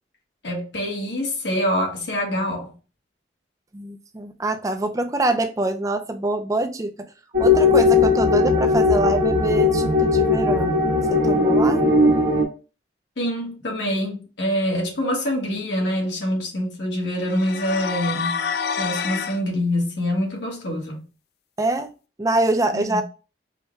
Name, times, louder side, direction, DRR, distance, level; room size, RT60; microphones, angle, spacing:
voice 1, 0.4-2.7 13.2-18.5 18.8-21.0 22.7-23.0, equal, 80° left, 1.4 m, -25 dB
voice 2, 3.7-6.9 7.4-11.9 21.6-21.9 22.2-23.0, right 2 dB, 20° right, 0.4 m, -25 dB
sound 1, 7.3-12.4, left 3 dB, 75° right, 1.1 m, -18 dB
sound 2, 17.2-19.4, left 6 dB, 60° left, 0.3 m, -27 dB
4.9 x 2.2 x 3.0 m
head